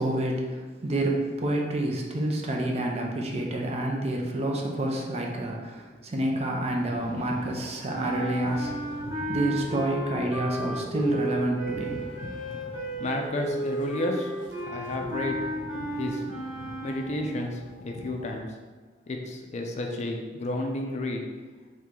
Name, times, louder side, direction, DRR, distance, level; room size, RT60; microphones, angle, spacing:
voice 1, 0.0-8.9 9.3-12.0, right 1 dB, 35° right, 0 dB, 0.5 m, -28 dB
sound 1, 6.6-18.4, left 1 dB, 85° left, 0.5 m, -44 dB
sound 2, 7.9-17.4, right 1 dB, 20° right, 1.1 m, -34 dB
voice 2, 13.0-14.3 14.6-15.4 15.9-16.2 16.8-17.6 17.8-18.5 19.1-21.2, left 1 dB, 40° left, 2 dB, 0.4 m, -31 dB
3.2 x 3.0 x 3.7 m, 1.3 s
head